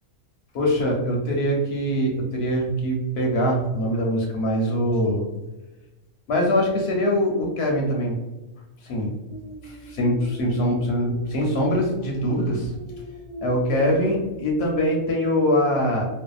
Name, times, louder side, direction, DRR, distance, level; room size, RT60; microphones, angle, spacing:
voice 1, 0.5-5.3 6.3-8.2 8.8-9.2 9.6-12.7 13.4-16.1, equal, 65° left, -1 dB, 0.7 m, -23 dB
sound 1, 9.3-14.9, left 1 dB, 25° right, 0.5 m, -40 dB
2.6 x 2.1 x 2.3 m, 1.1 s
omnidirectional pair, 1.4 m